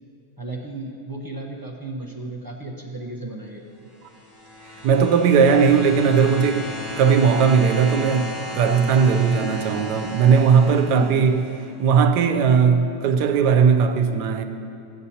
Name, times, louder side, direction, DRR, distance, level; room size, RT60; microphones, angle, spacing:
voice 1, 0.4-3.7 10.6-11.3, right 2 dB, 30° right, 0.4 m, -32 dB
sound 1, 3.9-11.7 12.7-12.8, left 1 dB, 50° left, 1.9 m, -35 dB
voice 2, 4.8-6.7 7.0-11.4 11.8-14.4, right 6 dB, 90° right, 1.2 m, -18 dB
sound 2, 5.4-9.1, left 2 dB, 75° left, 1.4 m, -42 dB
16.5 x 7.8 x 2.8 m
omnidirectional pair, 1.7 m